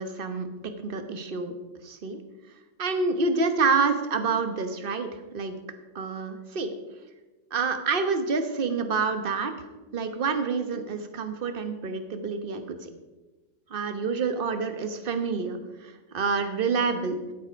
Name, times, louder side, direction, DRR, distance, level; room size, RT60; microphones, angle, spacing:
voice 1, 0.0-1.5 1.8-2.2 2.8-5.6 5.9-6.7 7.5-9.5 9.9-12.9 13.7-17.2, right 4 dB, 35° right, 7 dB, 1.0 m, -28 dB
13.5 x 8.4 x 5.1 m, 1.1 s
omnidirectional pair, 2.0 m